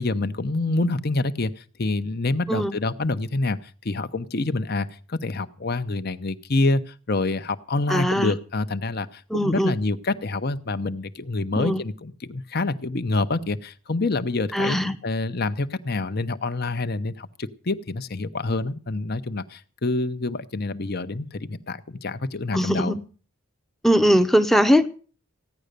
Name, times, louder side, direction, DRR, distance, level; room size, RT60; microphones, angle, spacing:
voice 1, 0.0-14.8 15.0-23.0, left 2 dB, 45° left, 11 dB, 0.9 m, -27 dB
voice 2, 7.9-8.4 9.3-9.7 11.6-11.8 14.5-14.9 22.5-23.0 23.8-24.9, equal, ahead, 9 dB, 0.8 m, -20 dB
16.0 x 10.5 x 6.7 m, 0.40 s
head